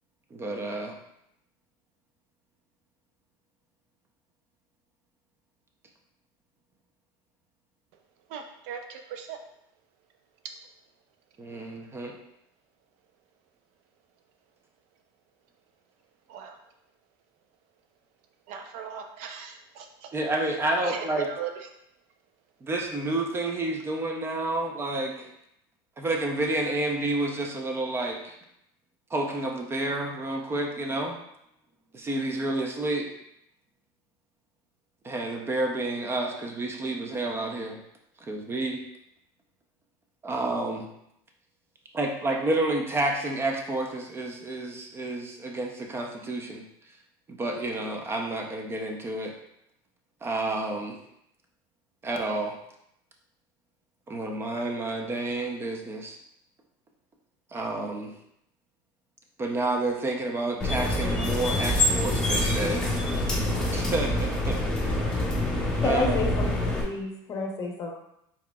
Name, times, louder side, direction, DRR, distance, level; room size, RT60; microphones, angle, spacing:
voice 1, 0.3-0.9 11.4-12.1 20.1-21.3 22.6-25.3 26.0-28.3 29.1-31.2 31.9-33.0 35.0-37.8 38.3-38.8 40.2-40.9 41.9-46.6 47.3-49.3 50.2-50.9 52.0-52.5 54.1-56.2 57.5-58.1 59.4-62.8 63.7-64.8 65.8-66.2, right 2 dB, 20° right, 2 dB, 0.6 m, -30 dB
voice 2, 8.3-9.4 16.3-16.6 18.5-20.1 20.8-21.7, right 7 dB, 65° right, 5 dB, 0.6 m, -38 dB
sound 1, 60.6-66.8, left 1 dB, 5° left, 1.2 m, -26 dB
voice 3, 65.8-66.5 66.8-67.9, left 3 dB, 30° left, 0 dB, 0.9 m, -29 dB
4.7 x 4.2 x 2.3 m, 0.79 s
supercardioid pair, 130°, 11 cm